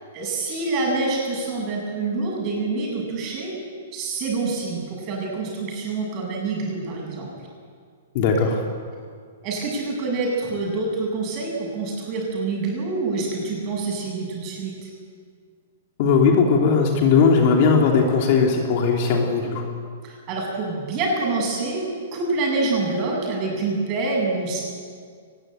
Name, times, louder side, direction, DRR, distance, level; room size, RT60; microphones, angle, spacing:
voice 1, 0.1-3.5 3.9-7.3 9.4-14.9 20.0-21.8 22.1-24.6, right 3 dB, 25° right, -1 dB, 7.8 m, -26 dB
voice 2, 8.1-8.6 16.0-19.6, left 5 dB, 35° left, 1 dB, 3.1 m, -18 dB
23.0 x 21.0 x 9.1 m, 2.1 s
hypercardioid pair, 170°, 0 cm